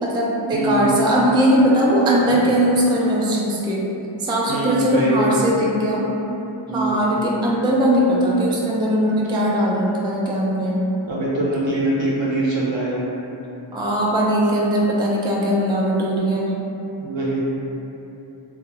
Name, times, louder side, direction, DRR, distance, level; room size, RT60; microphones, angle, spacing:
voice 1, 0.0-3.8 4.2-6.1 6.7-10.8 13.7-16.5, equal, 10° right, -4 dB, 0.3 m, -19 dB
voice 2, 0.5-0.9 4.5-5.4 6.7-7.1 11.1-13.0 17.0-17.4, right 1 dB, 65° right, -6 dB, 0.8 m, -23 dB
3.0 x 2.3 x 2.9 m, 2.9 s
wide cardioid pair, 50°, 48 cm